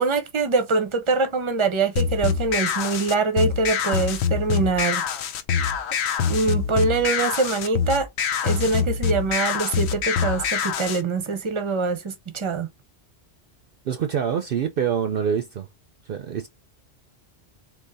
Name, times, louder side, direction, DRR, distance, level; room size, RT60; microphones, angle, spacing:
voice 1, 0.0-5.0 6.2-8.1 8.4-12.7, right 4 dB, 30° right, 0.8 m, -24 dB
sound 1, 2.0-11.0, left 7 dB, 75° left, 0.9 m, -25 dB
voice 2, 13.8-15.7 16.0-16.5, right 8 dB, 60° right, 0.7 m, -25 dB
3.9 x 2.8 x 4.1 m
omnidirectional pair, 1.2 m